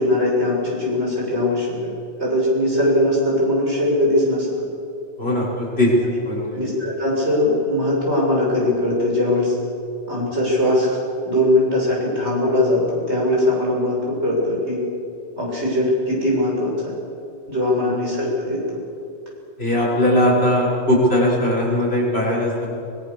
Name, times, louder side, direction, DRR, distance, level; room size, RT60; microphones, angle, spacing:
voice 1, 0.0-1.7 2.2-4.5 6.5-9.5 10.1-10.9 11.3-14.8 15.4-16.9 17.5-18.8, left 1 dB, 65° right, -3 dB, 7.5 m, -20 dB
voice 2, 5.2-5.9 6.2-6.6 17.8-17.9 19.6-22.7, left 1 dB, 60° left, -5 dB, 6.1 m, -19 dB
23.5 x 22.0 x 7.1 m, 2.6 s
omnidirectional pair, 1.2 m